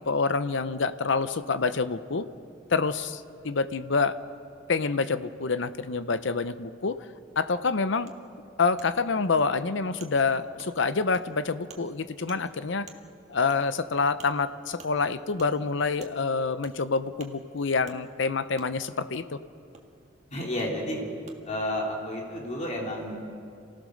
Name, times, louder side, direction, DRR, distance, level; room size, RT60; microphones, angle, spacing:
voice 1, 0.0-2.3 2.7-4.2 4.7-7.0 7.4-8.1 8.6-12.9 13.3-19.4, left 4 dB, 65° left, 12 dB, 0.7 m, -27 dB
Wood, 8.1-8.2 8.8-8.9 9.4-9.5 10.0-10.1 10.6-10.7 11.1-11.2 11.7-11.8 12.3-12.4 12.9-13.0 13.5-13.6 14.2-14.3 14.8-14.9 15.4-15.5 16.0-16.1 16.6-16.8 17.2-17.3 17.9-18.0 18.6-18.7 19.7-19.8 20.6-20.7 21.3-21.4, right 4 dB, 35° right, 1.7 m, -48 dB
voice 2, 20.3-21.0 21.4-23.2, left 1 dB, 35° left, -2 dB, 3.3 m, -31 dB
28.0 x 16.5 x 6.5 m, 2.4 s
head